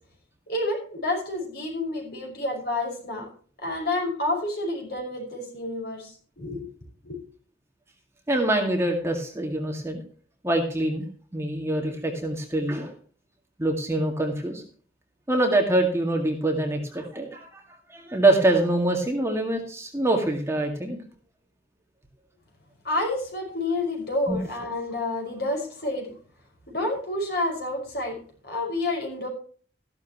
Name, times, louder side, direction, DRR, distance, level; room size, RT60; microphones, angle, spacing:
voice 1, 0.5-3.3 3.6-6.7 7.0-7.2 22.8-26.1 26.7-29.3, left 2 dB, 55° left, 1 dB, 5.6 m, -29 dB
voice 2, 8.3-10.0 10.4-11.0 11.3-12.9 13.6-14.6 15.3-17.6 17.9-21.0 24.3-24.4, right 1 dB, 15° right, 2 dB, 2.0 m, -24 dB
14.5 x 12.0 x 3.0 m, 0.43 s
head